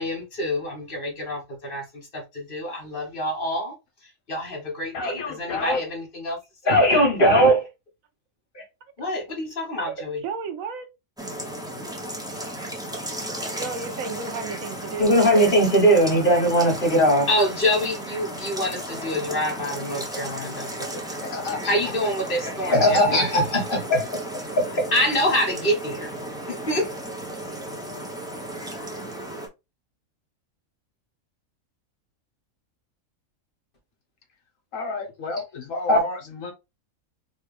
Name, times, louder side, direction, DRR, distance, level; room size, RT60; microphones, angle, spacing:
voice 1, 0.0-3.7 4.3-6.4 6.6-7.7 8.5-8.6 9.0-10.2 15.0-21.1 21.7-24.2 24.6-26.1 26.5-26.9 35.9-36.0, equal, 40° left, 1.3 m, -22 dB
voice 2, 4.9-5.8 21.2-21.7 34.7-36.5, left 3 dB, 70° left, 1.3 m, -31 dB
voice 3, 10.2-10.9 13.6-16.3, right 5 dB, 75° right, 1.1 m, -34 dB
sound 1, 11.2-29.5, right 1 dB, 5° right, 0.6 m, -34 dB
4.3 x 2.3 x 3.2 m
omnidirectional pair, 1.5 m